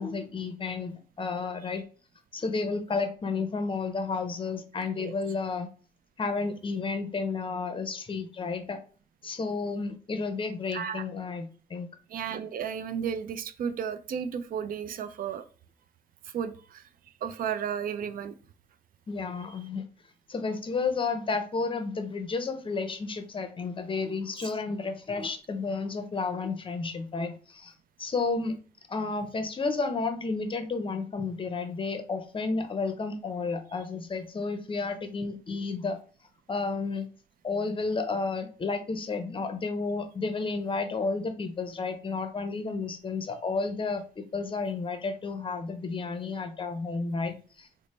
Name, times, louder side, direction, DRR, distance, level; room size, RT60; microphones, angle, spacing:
voice 1, 0.0-1.8 2.3-5.7 6.2-8.8 9.2-11.9 19.1-19.9 20.3-27.7 28.0-28.6 28.9-36.0 36.5-37.1 37.4-47.9, left 4 dB, 30° left, 8 dB, 0.6 m, -32 dB
voice 2, 10.7-11.0 12.1-15.4 16.3-16.8 17.2-18.3, right 8 dB, 60° right, 11 dB, 0.4 m, -33 dB
3.2 x 2.0 x 4.0 m, 0.39 s
cardioid pair, 100°, 17 cm